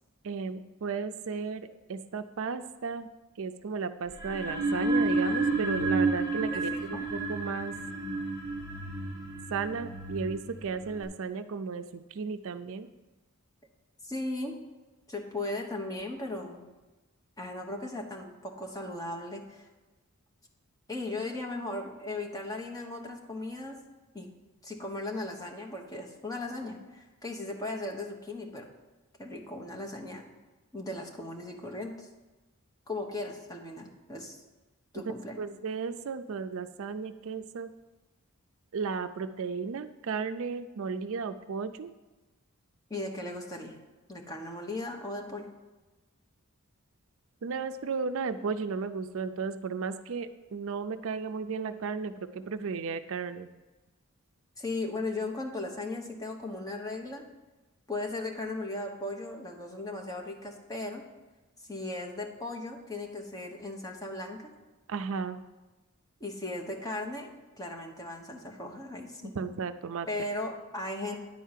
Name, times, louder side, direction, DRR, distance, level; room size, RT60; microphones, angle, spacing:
voice 1, 0.2-3.1 3.4-7.7 9.5-12.9 35.1-37.7 38.7-41.9 47.4-53.5 64.9-65.4 69.4-70.1, right 5 dB, 65° right, 11 dB, 0.4 m, -34 dB
sound 1, 4.1-11.0, right 2 dB, 80° left, 3.2 m, -31 dB
voice 2, 6.5-7.1 14.0-14.5 15.1-16.7 17.4-19.7 20.9-23.8 24.1-24.3 24.6-28.7 29.2-30.2 30.7-32.1 32.9-34.4 34.9-35.4 42.9-43.7 44.1-45.5 54.6-57.2 57.9-61.0 61.7-64.5 66.2-67.3 67.6-69.3 70.1-71.2, left 2 dB, 15° left, 1 dB, 1.1 m, -37 dB
10.0 x 4.6 x 7.4 m, 1.2 s
head